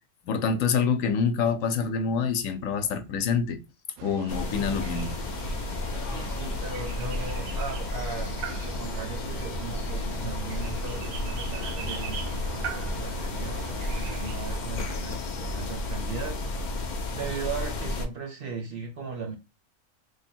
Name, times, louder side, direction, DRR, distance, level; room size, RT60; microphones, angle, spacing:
voice 1, 0.3-3.6 4.0-5.2, left 6 dB, 75° left, 1.0 m, -26 dB
sound 1, 4.0-14.6, right 8 dB, 90° right, 1.0 m, -40 dB
sound 2, 4.3-18.1, left 2 dB, 60° left, 0.5 m, -32 dB
voice 2, 6.1-19.4, right 5 dB, 55° right, 0.7 m, -38 dB
3.3 x 2.2 x 4.3 m
omnidirectional pair, 1.4 m